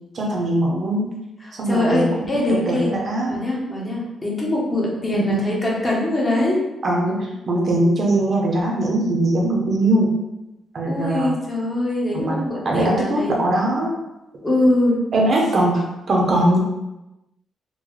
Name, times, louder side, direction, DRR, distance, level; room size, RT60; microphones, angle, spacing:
voice 1, 0.1-1.1 1.6-3.3 5.1-5.6 6.8-10.1 10.7-11.3 12.1-12.4 12.6-13.9 15.1-15.8 16.1-16.6, right 1 dB, 40° right, -1 dB, 0.6 m, -21 dB
voice 2, 1.4-2.9 3.2-6.6 10.8-13.4 14.4-15.0, left 1 dB, 20° left, -4 dB, 0.9 m, -22 dB
3.8 x 2.1 x 3.1 m, 0.97 s
cardioid pair, 140°, 0 cm